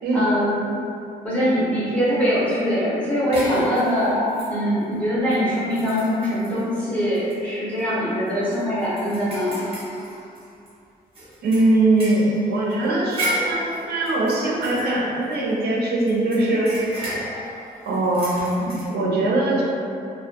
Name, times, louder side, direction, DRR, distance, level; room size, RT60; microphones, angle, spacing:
voice 1, 0.1-0.6 1.2-4.1 4.5-9.6, equal, 10° left, -10 dB, 0.6 m, -22 dB
sound 1, 3.3-4.8 5.3-5.4 5.7-6.6 7.1-7.3 7.7-7.8 8.3-10.7 11.2-15.6 16.1-18.9, equal, 35° right, 0.6 m, -32 dB
voice 2, 11.4-16.8 17.8-19.6, right 2 dB, 80° right, -4 dB, 0.5 m, -21 dB
2.1 x 2.1 x 2.8 m, 2.5 s
wide cardioid pair, 175°, 16 cm